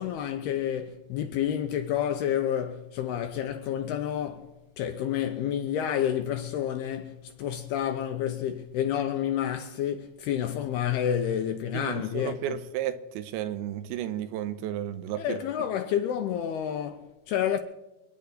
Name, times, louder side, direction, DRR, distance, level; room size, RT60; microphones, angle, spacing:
voice 1, 0.0-4.5 4.8-12.4 15.2-17.6, left 10 dB, 80° left, 2.4 m, -29 dB
voice 2, 11.7-15.4, right 11 dB, 85° right, 3.1 m, -33 dB
28.0 x 9.8 x 4.1 m
omnidirectional pair, 5.2 m